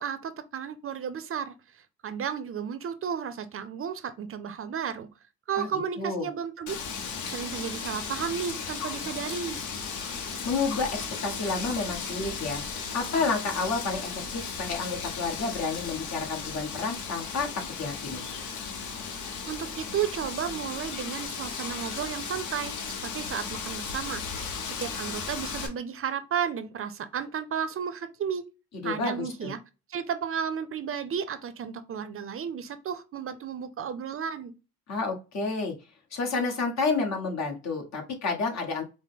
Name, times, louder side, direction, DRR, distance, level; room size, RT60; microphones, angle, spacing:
voice 1, 0.0-1.5 2.0-5.1 5.5-6.7 7.3-9.6 19.2-28.4 28.8-29.6 29.9-34.5, right 7 dB, 45° right, 0.6 m, -33 dB
voice 2, 6.0-6.3 10.4-10.9 11.2-12.6 12.9-17.5 17.8-18.2 28.8-29.5 34.9-35.7 36.1-38.8, left 4 dB, 60° left, 1.4 m, -30 dB
Wind, 6.7-25.7, left 5 dB, 80° left, 1.0 m, -36 dB
4.9 x 2.1 x 3.7 m
cardioid pair, 90°, 30 cm